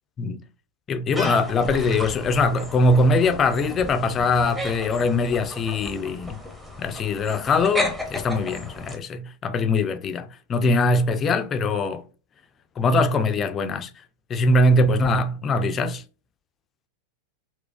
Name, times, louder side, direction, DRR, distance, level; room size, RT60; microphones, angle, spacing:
voice 1, 0.9-6.4 6.8-12.0 12.8-13.9 14.3-16.0, left 2 dB, 25° left, 0.3 m, -22 dB
sound 1, 1.1-9.0, left 1 dB, 5° right, 0.7 m, -33 dB
4.1 x 2.1 x 2.2 m
figure-of-eight pair, 90°, 0 cm